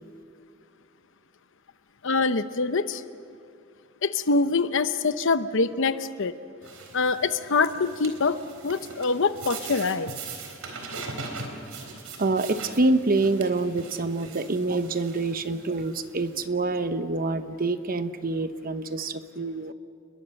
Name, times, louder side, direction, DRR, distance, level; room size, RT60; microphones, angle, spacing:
voice 1, 2.0-3.0 4.0-6.3 6.9-8.4 8.6-10.1, left 4 dB, 65° left, 11 dB, 0.9 m, -24 dB
sound 1, 6.6-16.5, right 4 dB, 85° right, 3.9 m, -41 dB
voice 2, 11.9-19.7, right 2 dB, 45° right, 10 dB, 1.0 m, -26 dB
29.5 x 21.5 x 6.5 m, 2.5 s
head